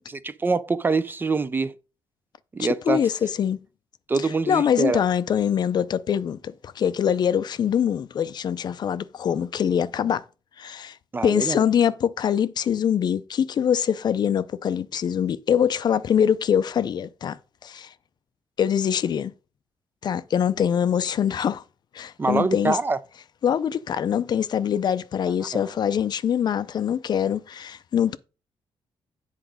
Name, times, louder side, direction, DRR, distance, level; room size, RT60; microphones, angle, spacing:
voice 1, 0.1-1.7 2.5-3.0 4.1-5.0 11.1-11.6 22.2-23.0 25.5-25.7, right 4 dB, 20° right, 0.4 m, -24 dB
voice 2, 2.6-3.6 4.5-10.2 10.6-11.0 11.2-17.4 17.6-17.9 18.6-19.3 20.0-21.6 21.9-22.8 23.4-28.2, left 8 dB, 50° left, 0.4 m, -23 dB
8.0 x 4.9 x 5.0 m
cardioid pair, 140°, 9 cm